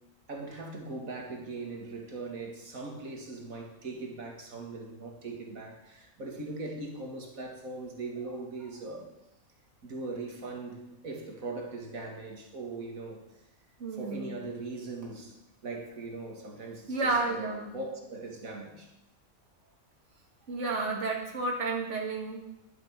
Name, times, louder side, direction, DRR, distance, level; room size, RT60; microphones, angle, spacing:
voice 1, 0.3-9.1 9.8-13.2 13.9-15.3 15.6-18.9, right 3 dB, 80° right, 1 dB, 2.4 m, -40 dB
voice 2, 13.8-14.3 16.9-17.8 20.5-22.4, right 3 dB, 60° right, 0 dB, 2.2 m, -31 dB
11.0 x 11.0 x 6.0 m, 0.87 s
omnidirectional pair, 1.4 m